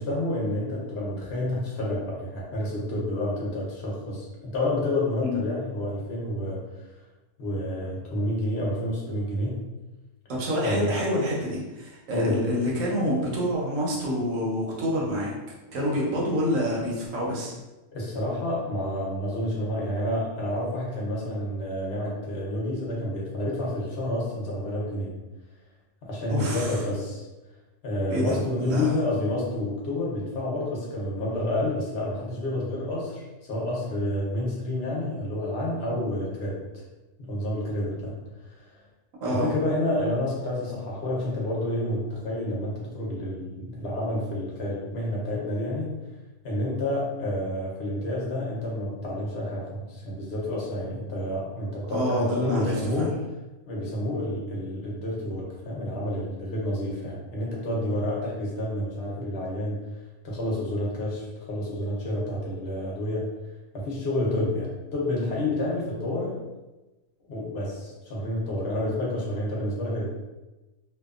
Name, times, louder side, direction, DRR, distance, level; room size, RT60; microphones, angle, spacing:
voice 1, 0.0-4.3 4.5-6.9 7.4-9.6 10.6-11.0 12.1-12.5 17.9-25.2 26.0-27.3 27.8-36.6 37.2-38.2 38.5-38.8 39.3-45.9 46.4-53.1 53.7-59.8 60.2-63.3 63.7-66.4 67.3-70.1, left 1 dB, 55° left, -4 dB, 0.9 m, -29 dB
voice 2, 10.3-15.3 15.7-17.5 26.3-26.8 28.1-28.9 39.2-39.5 51.9-53.1, equal, 80° right, -4 dB, 1.1 m, -27 dB
2.7 x 2.2 x 2.4 m, 1.1 s
omnidirectional pair, 1.4 m